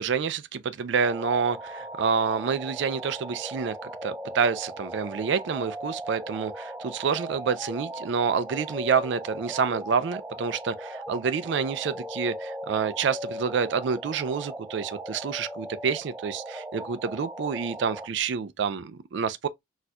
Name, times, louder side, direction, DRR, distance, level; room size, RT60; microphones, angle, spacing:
voice 1, 0.0-19.5, right 6 dB, 65° right, 0.4 m, -28 dB
sound 1, 1.0-18.1, right 1 dB, 15° right, 1.0 m, -38 dB
4.2 x 2.4 x 2.3 m
head